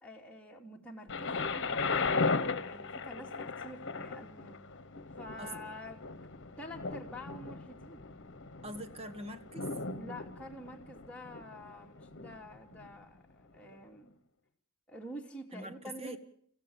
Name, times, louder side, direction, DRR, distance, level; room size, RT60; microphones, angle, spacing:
voice 1, 0.0-4.6 5.2-6.1 6.6-8.1 10.0-14.1 14.9-16.2, equal, 5° left, -1 dB, 2.6 m, -48 dB
Thunder, 1.1-12.9 13.7-13.8, left 4 dB, 55° left, 1.2 m, -37 dB
voice 2, 8.6-9.8 15.5-16.2, right 1 dB, 30° right, 10 dB, 1.5 m, -44 dB
25.5 x 15.5 x 7.1 m, 0.67 s
head